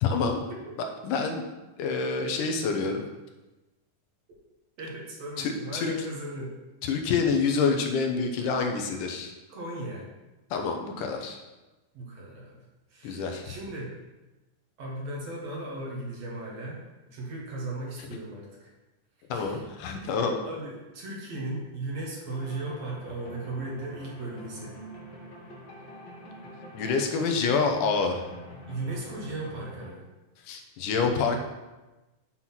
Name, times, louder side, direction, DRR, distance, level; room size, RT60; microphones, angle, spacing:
voice 1, 0.0-0.4 1.0-1.5 1.8-3.0 5.4-5.9 6.8-9.3 10.5-11.4 13.0-13.5 19.3-20.4 26.7-28.2 30.5-31.4, left 5 dB, 85° left, 4 dB, 2.4 m, -27 dB
voice 2, 4.8-6.5 9.5-10.1 11.9-12.6 12.9-13.9 14.8-18.7 19.3-19.6 20.0-20.1 20.4-24.7 28.7-30.1 30.9-31.4, right 2 dB, 60° right, -3 dB, 2.5 m, -37 dB
sound 1, 22.3-30.0, left 1 dB, 65° left, 1.1 m, -46 dB
7.5 x 4.1 x 5.8 m, 1.1 s
omnidirectional pair, 3.7 m